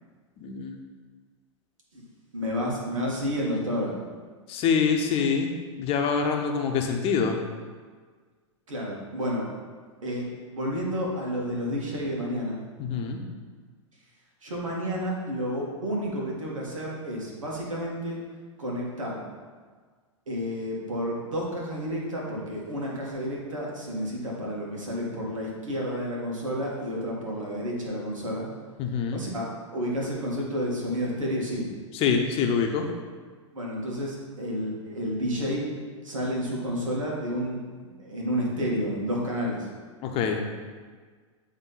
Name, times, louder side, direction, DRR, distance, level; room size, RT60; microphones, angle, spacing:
voice 1, 0.4-0.8 4.5-5.5 5.8-7.4 12.8-13.2 28.8-29.2 31.9-32.9 40.0-40.4, left 6 dB, 35° left, 3 dB, 0.9 m, -25 dB
voice 2, 2.3-3.9 8.7-9.4 10.0-10.2 10.5-12.6 14.4-18.2 18.6-19.2 20.3-28.5 29.1-29.5 29.7-31.7 33.5-35.7 36.0-39.7, equal, 80° right, -3 dB, 2.0 m, -30 dB
8.8 x 3.6 x 4.1 m, 1.5 s
hypercardioid pair, 105°, 16 cm